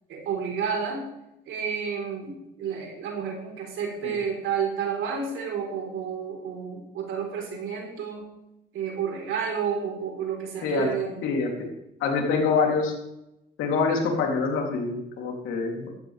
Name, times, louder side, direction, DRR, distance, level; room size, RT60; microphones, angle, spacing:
voice 1, 0.1-1.1 1.5-8.3 8.7-11.3, right 6 dB, 85° right, 0 dB, 4.2 m, -30 dB
voice 2, 11.2-11.7 12.0-12.9 13.6-15.9, left 4 dB, 90° left, 0 dB, 3.2 m, -25 dB
15.0 x 14.0 x 3.5 m, 0.86 s
cardioid pair, 90°, 20 cm